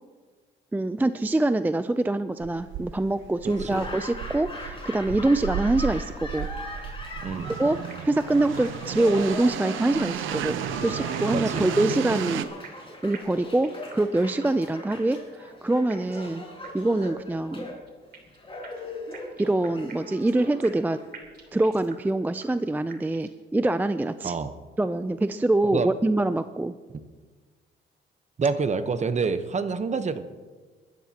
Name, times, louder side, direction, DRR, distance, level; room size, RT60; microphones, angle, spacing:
voice 1, 0.7-6.5 7.6-7.8 8.0-12.5 13.0-16.4 16.7-17.8 19.4-21.0 21.5-24.3 24.8-26.7, right 2 dB, 10° right, 12 dB, 0.4 m, -25 dB
sound 1, 2.4-12.4, right 10 dB, 85° right, 0.7 m, -33 dB
voice 2, 3.4-3.9 7.2-7.5 11.3-11.7 24.2-24.5 25.7-25.9 28.4-30.2, right 5 dB, 35° right, 10 dB, 0.9 m, -27 dB
Laughter / Applause, 3.5-21.5, left 2 dB, 25° left, 5.0 m, -40 dB
sound 2, 7.9-8.3 8.6-8.7 9.0-9.1 9.5-10.4 10.6-12.9 13.1-14.1 14.4-14.5 14.9-15.4 15.9-16.3 16.6-16.7 17.0-17.1 17.5-18.4 18.6-20.9 21.1-22.1 22.4-22.5 22.9-23.4, right 6 dB, 55° right, 3.0 m, -47 dB
22.0 x 13.0 x 2.9 m, 1.4 s
cardioid pair, 90°, 20 cm